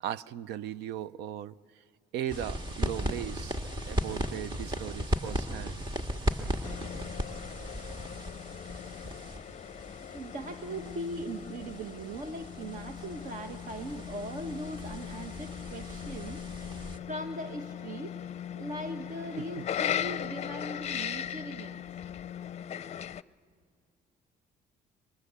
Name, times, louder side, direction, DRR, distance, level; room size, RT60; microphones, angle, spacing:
voice 1, 0.0-1.6 2.1-3.6 3.9-5.8 19.4-19.7, right 11 dB, 85° right, 0.6 m, -37 dB
sound 1, 2.3-17.0, equal, 30° right, 1.9 m, -37 dB
sound 2, 6.6-23.2, left 10 dB, 40° left, 0.6 m, -39 dB
voice 2, 9.3-9.9 10.1-16.7 17.1-18.2 18.5-21.8, right 1 dB, 50° right, 1.3 m, -40 dB
27.0 x 24.5 x 8.2 m
cardioid pair, 110°, 17 cm